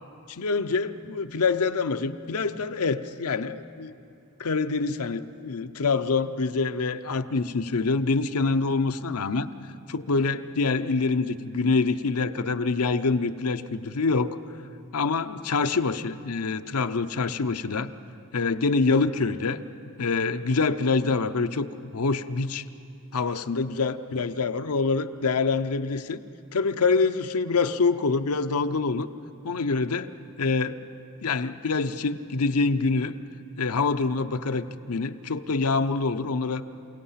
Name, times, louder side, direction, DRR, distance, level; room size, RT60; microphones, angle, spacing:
voice 1, 0.3-3.9 4.4-9.5 9.9-14.4 14.9-17.9 18.3-19.6 20.0-22.6 23.1-26.2 26.5-29.1 29.4-30.1 30.4-30.9 31.2-33.1 33.6-36.6, left 4 dB, 90° left, 9 dB, 0.7 m, -25 dB
28.5 x 17.5 x 5.8 m, 2.6 s
head